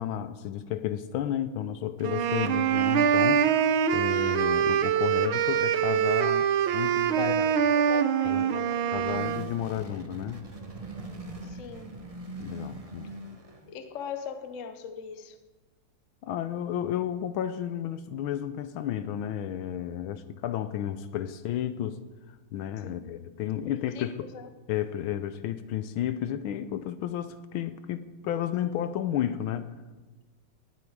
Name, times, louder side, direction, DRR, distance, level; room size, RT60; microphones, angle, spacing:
voice 1, 0.0-7.3 8.2-8.5 8.9-10.4 12.4-13.2 16.2-22.0 22.5-24.3 24.7-29.7, left 10 dB, 80° left, 1.4 m, -32 dB
sound 1, 2.0-9.5, right 8 dB, 75° right, 1.5 m, -24 dB
voice 2, 7.2-9.0 11.4-12.0 13.7-15.4 22.8-23.3 23.7-24.5, left 7 dB, 50° left, 1.0 m, -40 dB
sound 2, 8.5-13.8, right 2 dB, 30° right, 0.7 m, -42 dB
18.5 x 8.7 x 4.7 m
omnidirectional pair, 2.4 m